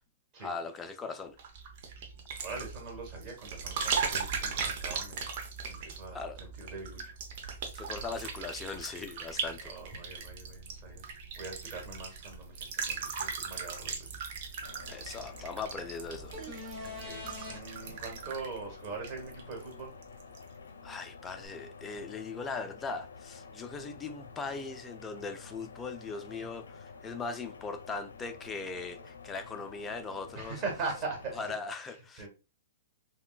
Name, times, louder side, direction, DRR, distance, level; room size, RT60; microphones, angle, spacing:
voice 1, 0.4-1.4 6.1-6.4 7.7-9.7 14.9-16.4 20.8-30.6 31.4-32.3, left 4 dB, 15° left, 0.4 m, -39 dB
sound 1, 1.4-19.7 20.0-20.4, right 6 dB, 50° right, 0.7 m, -38 dB
voice 2, 2.4-5.2 5.7-7.1 9.6-14.2 17.0-19.9 30.3-31.5 32.2-32.3, right 4 dB, 30° right, 1.4 m, -41 dB
sound 2, 14.6-31.5, left 5 dB, 85° left, 0.5 m, -50 dB
sound 3, 16.3-17.6 21.4-21.5, left 2 dB, 15° right, 1.0 m, -42 dB
3.6 x 2.2 x 2.4 m
hypercardioid pair, 130°, 0 cm